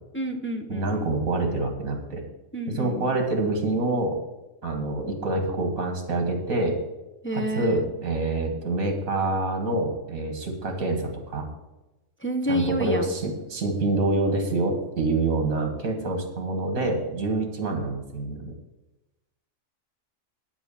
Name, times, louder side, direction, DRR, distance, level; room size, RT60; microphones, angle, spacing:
voice 1, 0.1-1.0 2.5-3.1 7.2-7.9 12.2-13.1, equal, 15° left, 4 dB, 0.4 m, -29 dB
voice 2, 0.7-2.2 2.7-4.2 4.6-6.8 7.3-11.5 12.5-18.5, right 2 dB, 70° right, 4 dB, 1.9 m, -26 dB
9.2 x 6.1 x 6.9 m, 1.0 s
omnidirectional pair, 1.4 m